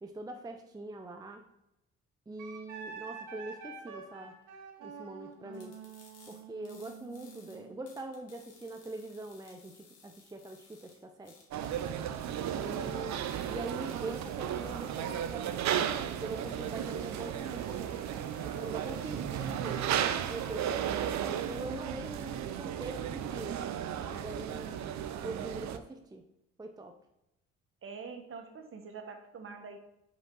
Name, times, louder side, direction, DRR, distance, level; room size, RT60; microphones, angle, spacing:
voice 1, 0.0-1.4 2.3-4.4 4.8-5.8 6.3-11.5 12.5-15.6 16.2-18.0 18.4-23.6 23.9-24.8 25.2-26.3 26.6-27.0, right 2 dB, 15° right, 5 dB, 0.5 m, -43 dB
Wind instrument woodwind instrument, 2.4-7.8, right 5 dB, 80° right, 1.1 m, -47 dB
sound 1, 5.5-21.7, left 4 dB, 55° left, 1.5 m, -60 dB
sound 2, 11.5-25.8, right 9 dB, 65° right, 0.5 m, -34 dB
voice 2, 12.8-13.1 27.8-29.8, right 5 dB, 45° right, 6 dB, 1.0 m, -46 dB
5.3 x 4.8 x 3.8 m, 0.84 s
cardioid pair, 90°, 30 cm